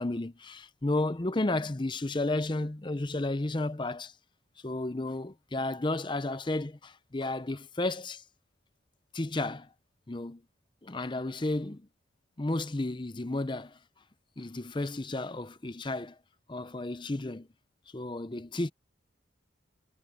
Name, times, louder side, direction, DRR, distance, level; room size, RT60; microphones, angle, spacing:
voice 1, 0.0-4.1 4.6-8.2 9.1-9.7 10.1-10.4 10.8-11.9 12.4-13.8 14.4-16.2 16.5-17.5 17.9-18.7, left 2 dB, 25° left, 0.6 m, -32 dB
head